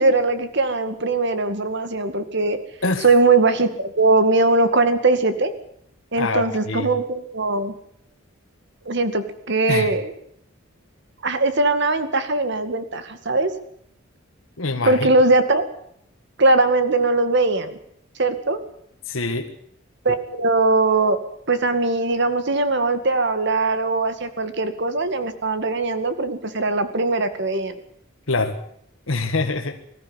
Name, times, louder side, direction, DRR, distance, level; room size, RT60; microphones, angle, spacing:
voice 1, 0.0-2.6 3.0-5.5 6.1-7.7 8.9-10.1 11.2-13.5 14.9-15.7 16.4-17.8 18.2-18.6 20.0-21.2 21.5-27.8, right 3 dB, 60° right, 10 dB, 2.1 m, -20 dB
voice 2, 6.2-6.9 9.7-9.9 14.6-15.1 19.1-19.5 28.3-28.6 29.1-29.8, left 3 dB, 85° left, 6 dB, 1.7 m, -24 dB
20.5 x 14.5 x 9.7 m, 0.70 s
head